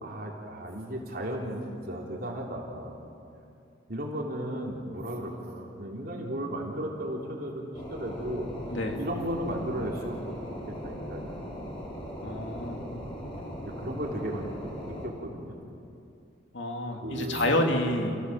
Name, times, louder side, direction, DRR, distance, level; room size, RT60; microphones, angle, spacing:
voice 1, 0.0-3.0 3.9-8.5 9.0-10.2 10.5-11.6 13.7-14.5 14.8-15.6 17.0-17.5, equal, 50° right, -1 dB, 3.7 m, -35 dB
sound 1, 7.7-15.1, equal, 25° left, 5.3 m, -39 dB
voice 2, 8.7-9.0 12.2-12.8 16.5-18.2, left 1 dB, 65° left, 3 dB, 2.7 m, -28 dB
30.0 x 16.5 x 7.7 m, 2.6 s
head